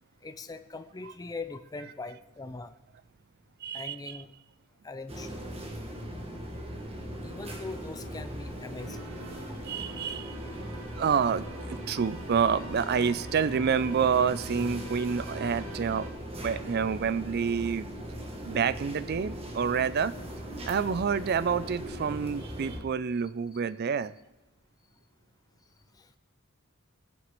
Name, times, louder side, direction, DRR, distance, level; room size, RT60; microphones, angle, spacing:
voice 1, 0.2-2.7 3.7-4.3 4.8-5.4 7.2-9.0 25.9-26.1, left 3 dB, 15° left, 9 dB, 0.4 m, -41 dB
voice 2, 3.6-4.2 9.7-10.4 11.0-16.1 16.4-17.8 18.4-20.1 20.7-24.1, right 6 dB, 45° right, 16 dB, 0.4 m, -28 dB
sound 1, 5.1-22.8, equal, 25° right, 1.6 m, -39 dB
sound 2, 8.8-16.1, right 1 dB, 80° right, 1.7 m, -46 dB
21.0 x 7.0 x 3.1 m, 1.0 s
head